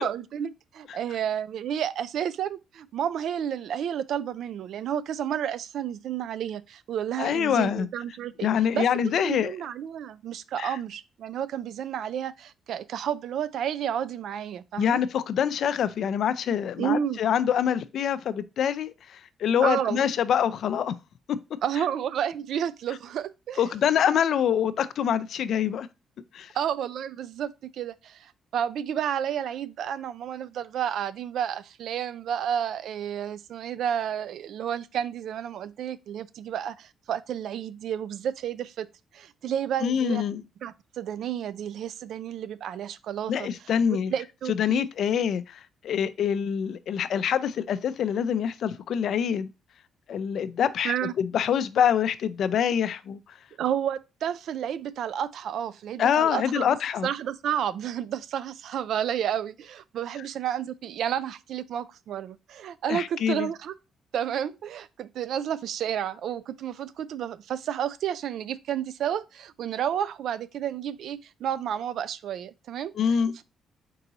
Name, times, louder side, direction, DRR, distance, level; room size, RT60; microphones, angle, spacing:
voice 1, 0.0-8.5 8.7-15.0 16.8-17.2 19.6-20.1 21.6-23.6 26.5-38.9 39.1-40.2 40.6-43.5 43.9-44.9 50.8-51.1 53.6-56.8 57.0-63.7 64.1-73.4, right 9 dB, 70° right, 0.3 m, -31 dB
voice 2, 7.2-7.9 8.4-9.5 10.6-10.7 14.8-20.9 21.3-21.4 23.6-25.9 26.3-26.5 39.8-40.4 43.3-44.1 44.5-49.5 50.1-53.2 56.0-57.1 62.9-63.5 73.0-73.3, left 8 dB, 65° left, 0.4 m, -25 dB
4.6 x 2.9 x 3.9 m
cardioid pair, 90°, 0 cm